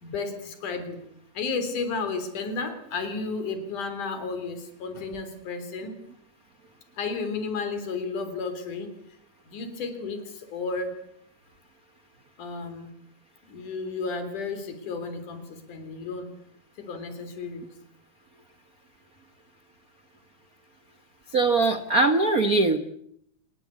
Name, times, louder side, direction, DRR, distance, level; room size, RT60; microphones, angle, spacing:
voice 1, 0.0-1.0 1.4-5.9 7.0-8.9 9.5-10.9 12.4-12.9 13.5-16.3 16.9-17.7, left 4 dB, 70° left, 8 dB, 5.0 m, -32 dB
voice 2, 21.3-22.8, right 3 dB, 90° right, 10 dB, 0.7 m, -21 dB
25.5 x 21.5 x 8.5 m, 0.72 s
omnidirectional pair, 3.7 m